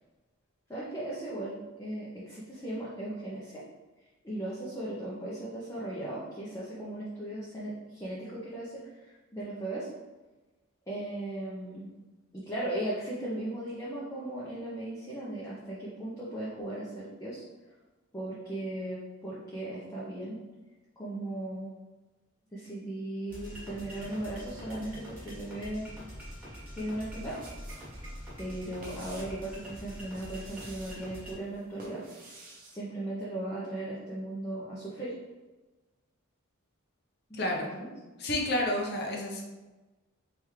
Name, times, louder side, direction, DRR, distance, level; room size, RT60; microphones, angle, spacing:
voice 1, 0.7-3.6 4.2-9.9 10.9-11.9 12.3-17.4 18.1-20.4 21.0-21.7 22.5-25.9 26.7-27.4 28.4-32.0 32.7-35.1 37.3-37.9, right 1 dB, 15° left, -8 dB, 0.7 m, -37 dB
sound 1, 23.3-31.3, equal, 10° right, 1.4 m, -44 dB
sound 2, 27.3-27.9 28.2-29.4 30.0-31.0 31.5-32.7, right 2 dB, 40° right, 0.8 m, -50 dB
voice 2, 37.3-37.7 38.2-39.4, left 1 dB, 50° left, 0 dB, 0.7 m, -30 dB
3.4 x 3.4 x 3.1 m, 1.2 s
head